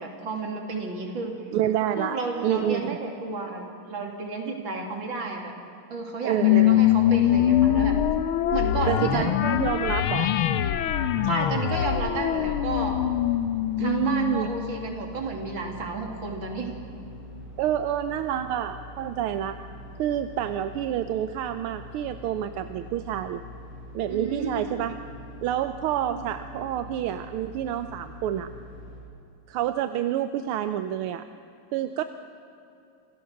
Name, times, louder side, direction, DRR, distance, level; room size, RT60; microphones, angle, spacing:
voice 1, 0.0-1.3 1.9-5.5 5.9-7.9 8.5-9.3 11.2-13.0 13.8-16.7 24.1-24.6 26.1-26.2, right 3 dB, 60° right, 2 dB, 3.3 m, -32 dB
voice 2, 1.5-2.2 2.4-2.9 6.2-6.8 8.9-10.3 13.8-14.5 17.6-19.5 20.0-23.4 23.9-25.0 25.4-28.5 29.5-31.2 31.7-32.0, right 11 dB, 85° right, 10 dB, 1.6 m, -28 dB
sound 1, 6.4-15.2, left 11 dB, 75° left, 1.7 m, -23 dB
sound 2, 12.7-29.0, left 1 dB, 45° left, 5.0 m, -44 dB
26.5 x 17.0 x 6.5 m, 2.8 s
omnidirectional pair, 2.4 m